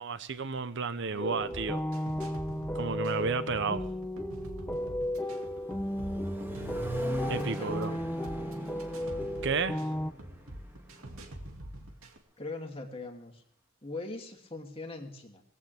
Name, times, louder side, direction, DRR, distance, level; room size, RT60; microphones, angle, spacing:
voice 1, 0.0-1.8 2.7-3.8 7.3-7.9 9.4-9.8, right 5 dB, 60° right, 0.8 m, -32 dB
voice 2, 1.1-1.6 7.3-8.7 12.4-13.4 13.8-15.4, left 2 dB, 25° left, 2.7 m, -42 dB
sound 1, 1.2-10.1, left 1 dB, 10° left, 0.7 m, -34 dB
sound 2, 1.5-12.2, right 1 dB, 75° right, 2.5 m, -45 dB
Accelerating revving vroom, 5.3-11.3, right 1 dB, 10° right, 2.3 m, -40 dB
20.0 x 15.5 x 3.5 m
head